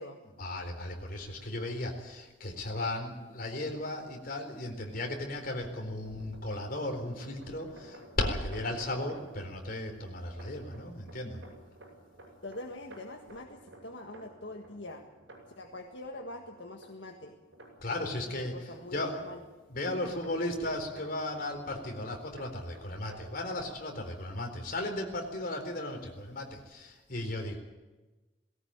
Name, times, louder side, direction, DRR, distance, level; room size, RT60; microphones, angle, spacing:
voice 1, 0.4-11.4 17.8-19.2 19.7-27.6, left 1 dB, 50° left, 3 dB, 4.1 m, -36 dB
sound 1, 5.3-23.8, right 1 dB, 90° right, 6.8 m, -54 dB
voice 2, 12.4-15.0 15.6-17.4 18.0-19.4 19.9-20.1, left 2 dB, 70° left, 2 dB, 1.7 m, -44 dB
19.0 x 17.5 x 8.9 m, 1.2 s
head